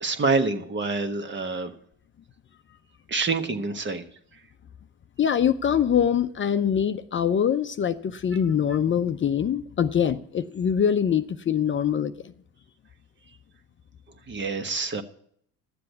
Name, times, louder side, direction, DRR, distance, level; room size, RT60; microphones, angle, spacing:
voice 1, 0.0-1.7 3.1-4.0 14.3-15.0, right 3 dB, 30° right, 1.3 m, -26 dB
voice 2, 5.2-12.3, left 8 dB, 35° left, 0.6 m, -24 dB
12.0 x 7.6 x 8.1 m
supercardioid pair, 80°, 35 cm